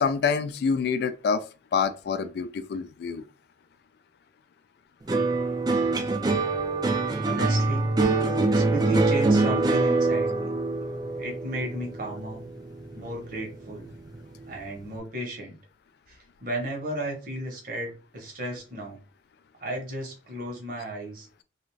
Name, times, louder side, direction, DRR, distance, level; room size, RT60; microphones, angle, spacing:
voice 1, 0.0-1.4 1.7-3.2, left 5 dB, 60° left, 0.3 m, -26 dB
sound 1, 5.1-13.5 13.9-14.5, right 3 dB, 20° right, 0.3 m, -25 dB
voice 2, 7.2-7.9 8.5-10.5 11.2-12.5 12.9-13.9 14.5-15.5 16.1-19.0 19.6-21.3, right 1 dB, 50° right, 1.0 m, -34 dB
2.5 x 2.3 x 3.1 m
head